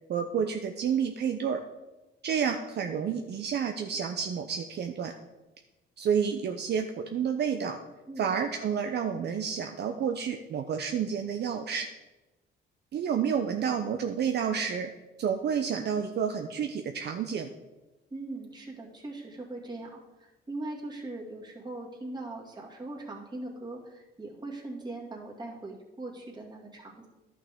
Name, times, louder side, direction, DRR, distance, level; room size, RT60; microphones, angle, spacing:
voice 1, 0.1-1.6 2.2-5.1 6.0-7.8 8.2-11.9 12.9-14.9 15.2-17.5, right 7 dB, 60° right, 6 dB, 0.6 m, -30 dB
voice 2, 18.1-27.1, right 2 dB, 20° right, -2 dB, 2.1 m, -40 dB
11.0 x 5.9 x 3.6 m, 1.1 s
cardioid pair, 90°, 20 cm